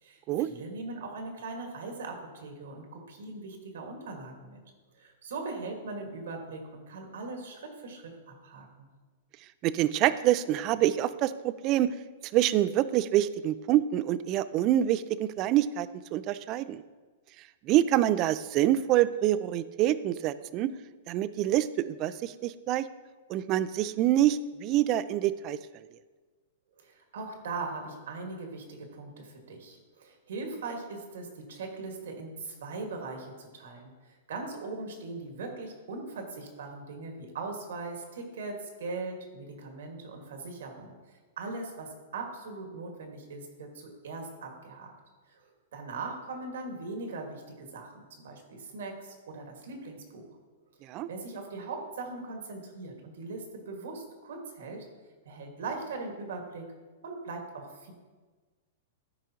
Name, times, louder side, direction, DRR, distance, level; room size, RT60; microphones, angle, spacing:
voice 1, 0.0-4.6 5.0-8.8 26.8-40.9 41.4-44.9 45.3-45.4 45.7-50.2 51.1-54.8 55.2-56.6 57.0-57.9, right 3 dB, 80° right, 3 dB, 1.7 m, -40 dB
voice 2, 9.6-11.9 12.3-16.8 17.6-20.7 21.1-22.9 23.3-25.6 50.8-51.1, right 13 dB, 35° right, 15 dB, 0.3 m, -26 dB
12.5 x 5.0 x 2.9 m, 1.3 s
hypercardioid pair, 140°, 0 cm